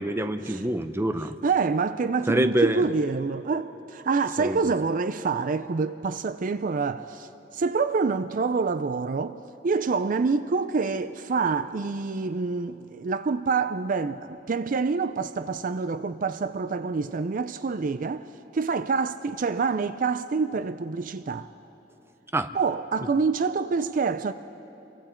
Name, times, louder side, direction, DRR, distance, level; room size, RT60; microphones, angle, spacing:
voice 1, 0.0-1.4 2.3-2.8 4.4-4.6 22.3-22.5, right 1 dB, 15° right, 0.7 m, -25 dB
voice 2, 1.4-9.4 9.6-18.3 18.5-21.5 22.5-24.3, right 4 dB, 50° right, 0.4 m, -26 dB
29.0 x 23.5 x 4.4 m
head